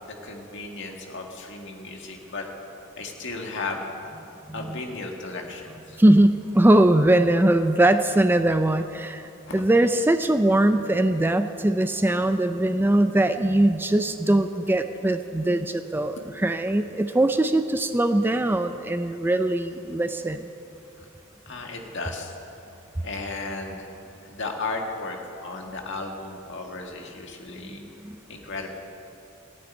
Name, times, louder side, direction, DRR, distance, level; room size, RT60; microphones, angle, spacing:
voice 1, 0.0-2.5 3.0-3.8 4.5-6.0 9.5-9.6 21.0-21.1 21.5-22.3 23.0-23.9 24.2-27.8 28.3-28.7, left 3 dB, 65° left, 2 dB, 1.9 m, -35 dB
voice 2, 6.0-16.2 16.4-20.5 27.6-28.2, right 1 dB, 10° right, 9 dB, 0.4 m, -21 dB
16.5 x 8.7 x 9.4 m, 2.8 s
head